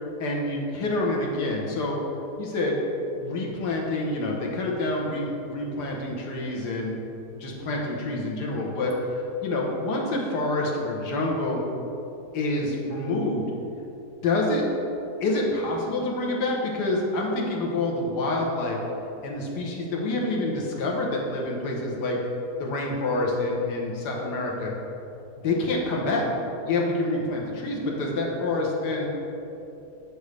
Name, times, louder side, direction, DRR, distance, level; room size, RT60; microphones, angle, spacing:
voice 1, 0.2-2.0 2.4-2.8 3.2-7.0 7.3-8.9 9.4-11.7 12.3-13.4 14.2-14.7 15.2-18.8 19.2-22.2 22.6-24.7 25.4-26.3 26.7-29.1, left 2 dB, 80° left, -1 dB, 1.6 m, -27 dB
6.9 x 6.4 x 3.2 m, 2.9 s
omnidirectional pair, 1.8 m